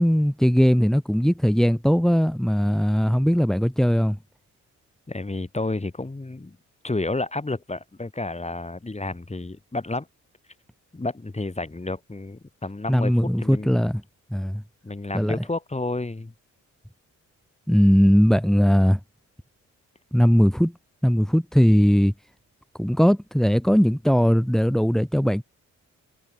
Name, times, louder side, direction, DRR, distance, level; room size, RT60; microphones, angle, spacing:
voice 1, 0.0-4.2 12.9-14.0 14.3-14.6 15.1-15.4 17.7-19.0 20.1-20.7 21.0-22.1 22.8-25.4, equal, ahead, 2.8 m, -19 dB
voice 2, 5.1-6.6 6.8-10.1 10.9-13.1 13.4-13.9 14.8-16.3, left 2 dB, 20° left, 8.0 m, -30 dB
cardioid pair, 75°, 31 cm